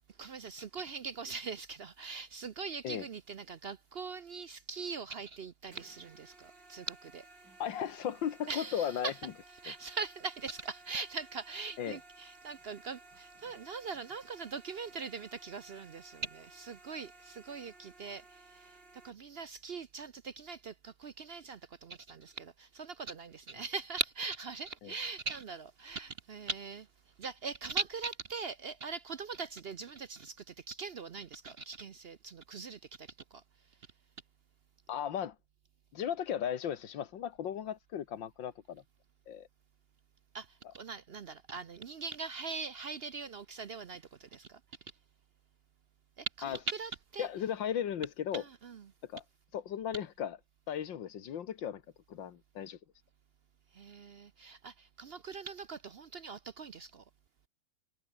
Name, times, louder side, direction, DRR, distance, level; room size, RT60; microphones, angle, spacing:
voice 1, 0.2-7.2 8.5-9.2 9.6-18.8 19.0-26.9 27.2-33.4 40.3-44.6 46.2-47.3 48.3-48.9 53.7-57.0, right 4 dB, 60° right, 0.6 m, -41 dB
sound 1, 5.7-19.1, right 2 dB, 75° right, 6.8 m, -57 dB
voice 2, 7.6-9.3 11.8-12.0 24.8-24.9 34.9-35.4 35.9-38.8 39.3-39.5 46.4-46.6 47.2-48.4 49.0-49.2 49.5-50.4 50.7-51.8 52.1-52.8, left 9 dB, 90° left, 2.1 m, -36 dB
omnidirectional pair, 2.0 m